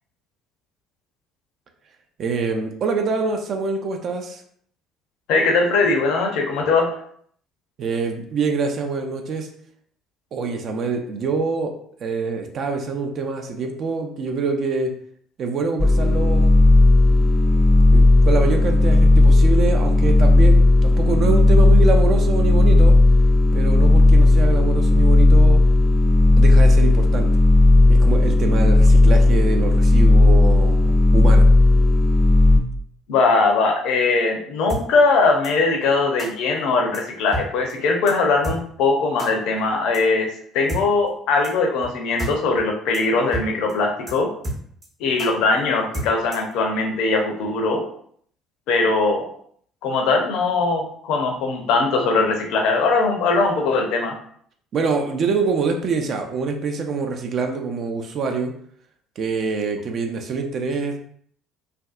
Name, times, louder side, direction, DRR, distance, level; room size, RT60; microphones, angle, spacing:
voice 1, 2.2-4.4 7.8-9.5 10.3-11.7 12.0-14.9 15.4-16.6 17.9-23.0 23.5-25.6 26.4-27.3 27.9-31.5 54.7-58.5 59.2-61.0, right 4 dB, 50° right, 4 dB, 0.4 m, -25 dB
voice 2, 5.3-6.9 33.1-44.3 45.0-47.8 48.7-49.3 49.8-54.1, left 3 dB, 65° left, 2 dB, 0.5 m, -20 dB
sound 1, 15.8-32.6, left 2 dB, 15° left, 0.5 m, -14 dB
sound 2, 34.7-34.8 35.4-35.5 36.2-36.3 36.9-37.0 37.3-37.4 37.7-37.8 38.1-38.2 38.4-38.6 39.2-39.3 39.9-40.0 40.7-40.8 41.4-41.5 41.8-41.9 42.2-42.3 42.6-42.7 42.9-43.0 43.3-43.4 43.7-43.8 44.1-44.2 44.4-44.9 45.2-45.3 45.9-46.5, right 1 dB, 35° right, 0.8 m, -29 dB
2.5 x 2.2 x 2.3 m, 0.62 s
figure-of-eight pair, 55°, 0 cm